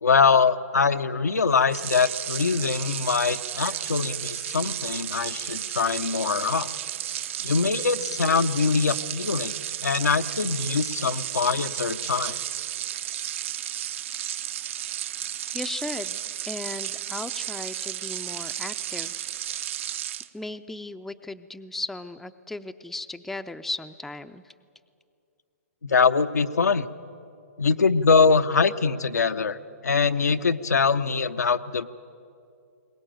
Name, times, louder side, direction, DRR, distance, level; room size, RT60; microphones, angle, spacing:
voice 1, 0.0-6.7 7.4-9.5 9.8-12.4 25.8-26.9 27.6-29.6 29.8-31.9, left 5 dB, 90° left, 8 dB, 0.8 m, -23 dB
sound 1, 1.7-20.3, right 11 dB, 50° right, 0.7 m, -33 dB
voice 2, 15.5-16.2 16.4-19.3 20.3-24.5, left 2 dB, 5° left, 9 dB, 0.5 m, -36 dB
22.5 x 18.5 x 9.1 m, 2.5 s
hypercardioid pair, 135°, 9 cm